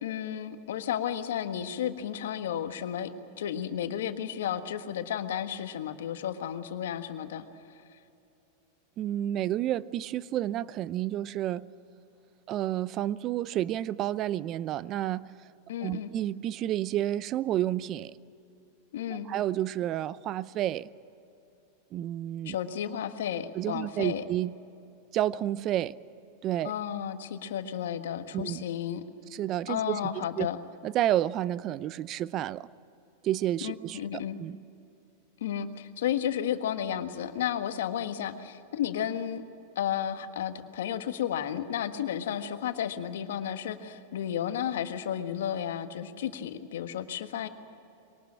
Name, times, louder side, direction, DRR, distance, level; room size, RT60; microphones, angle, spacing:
voice 1, 0.0-3.1 3.4-7.4 15.7-16.1 18.9-19.3 22.4-24.2 26.6-29.0 29.7-30.6 33.6-34.4 35.4-39.4 39.7-47.5, left 9 dB, 75° left, 9 dB, 1.4 m, -32 dB
voice 2, 9.0-11.7 12.5-15.3 15.8-18.1 19.1-20.9 21.9-22.6 23.5-24.5 25.1-26.0 26.4-26.7 28.3-28.6 29.3-30.5 30.8-32.7 33.2-34.6, right 12 dB, 40° right, 19 dB, 0.6 m, -30 dB
22.5 x 19.0 x 8.8 m, 2.8 s
hypercardioid pair, 105°, 0 cm